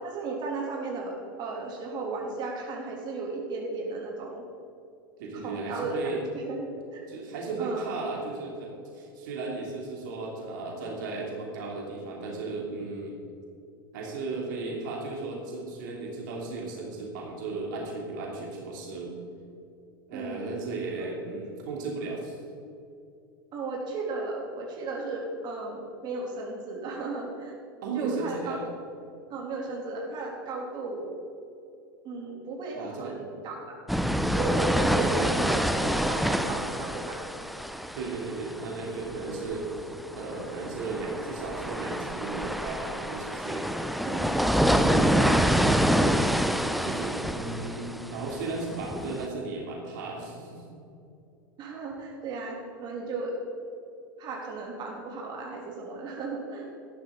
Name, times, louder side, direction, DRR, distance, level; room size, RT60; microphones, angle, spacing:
voice 1, 0.0-4.4 5.3-6.0 6.3-7.0 7.6-7.9 20.1-20.6 23.5-27.5 27.9-28.6 29.3-31.1 32.0-33.8 34.3-35.8 36.1-37.2 44.1-44.3 44.8-45.6 51.6-53.3 54.2-56.7, right 3 dB, 40° right, -2 dB, 3.1 m, -35 dB
voice 2, 5.2-6.2 7.1-13.2 13.9-19.1 20.1-22.4 27.8-28.6 32.7-33.2 34.8-35.4 37.9-43.7 46.5-50.6, right 3 dB, 65° right, -2 dB, 3.0 m, -35 dB
sound 1, 33.9-49.3, equal, ahead, 0.7 m, -27 dB
14.0 x 12.0 x 3.9 m, 2.6 s
hypercardioid pair, 95°, 11 cm